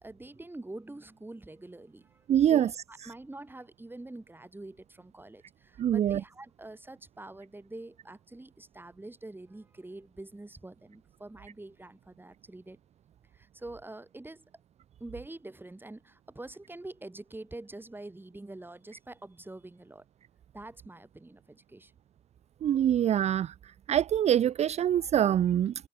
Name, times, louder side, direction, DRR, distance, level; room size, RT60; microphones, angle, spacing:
voice 1, 0.0-12.8 13.3-14.4 15.0-20.0 20.5-21.9, right 2 dB, 15° right, 2.7 m, -45 dB
voice 2, 2.3-2.7 5.8-6.2 22.6-25.7, right 10 dB, 45° right, 0.4 m, -25 dB
supercardioid pair, 65°, 15 cm